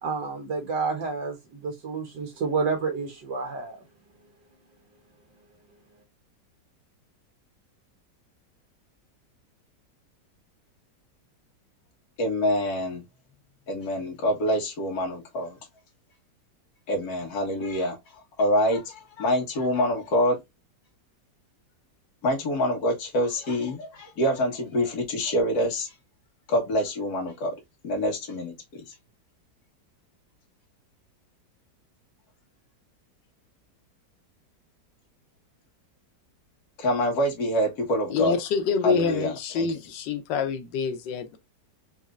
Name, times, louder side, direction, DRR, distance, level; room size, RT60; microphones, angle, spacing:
voice 1, 0.0-3.8, right 4 dB, 80° right, 1.6 m, -29 dB
voice 2, 12.2-13.0 13.7-15.6 16.9-20.4 22.2-25.9 26.5-27.6 27.8-28.9 36.8-38.4 38.8-39.7, equal, 60° left, 1.8 m, -26 dB
voice 3, 38.1-41.4, left 6 dB, 85° left, 1.4 m, -26 dB
4.2 x 3.2 x 2.4 m
omnidirectional pair, 1.9 m